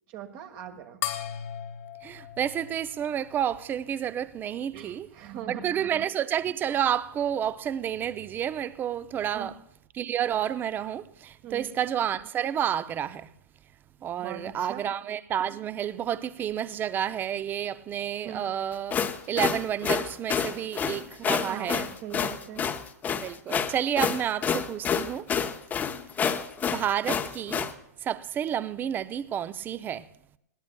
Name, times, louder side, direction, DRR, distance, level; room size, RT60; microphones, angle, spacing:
voice 1, 0.1-1.0 4.7-5.9 9.3-9.5 11.4-11.7 14.2-14.9 18.2-18.4 21.3-22.7, right 9 dB, 40° right, 1.3 m, -40 dB
sound 1, 1.0-3.8, left 11 dB, 45° left, 1.3 m, -37 dB
voice 2, 2.0-5.1 5.5-9.5 9.9-13.3 14.0-19.0 19.3-21.9 23.2-25.3 26.7-27.7 28.0-30.1, right 9 dB, 20° right, 0.5 m, -30 dB
sound 2, 18.7-27.7, left 7 dB, 20° left, 0.8 m, -28 dB
20.0 x 17.5 x 2.3 m
hypercardioid pair, 115°, 9 cm